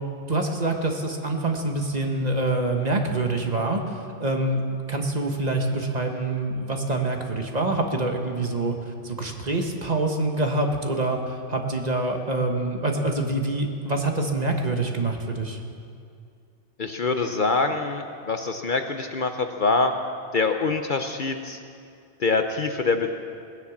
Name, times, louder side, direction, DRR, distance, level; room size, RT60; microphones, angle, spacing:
voice 1, 0.3-4.6 4.9-8.7 9.0-15.6, right 2 dB, 35° right, 3 dB, 1.4 m, -26 dB
voice 2, 16.8-19.9 20.3-21.6 22.2-23.1, left 3 dB, 50° left, 6 dB, 0.8 m, -24 dB
18.5 x 10.5 x 7.2 m, 2.5 s
omnidirectional pair, 1.2 m